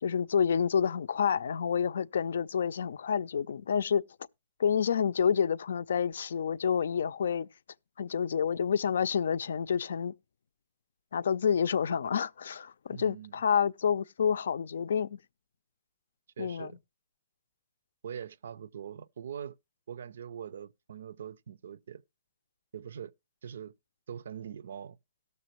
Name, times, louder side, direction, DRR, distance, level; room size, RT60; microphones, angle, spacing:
voice 1, 0.0-4.0 4.6-7.5 8.0-10.1 11.1-15.2 16.4-16.7, left 7 dB, 80° left, 0.4 m, -28 dB
voice 2, 12.9-13.4 16.4-16.8 18.0-19.6 19.9-22.0 22.7-23.1 23.4-23.7 24.1-25.0, right 8 dB, 75° right, 0.5 m, -42 dB
18.0 x 6.8 x 3.0 m
hypercardioid pair, 165°, 0 cm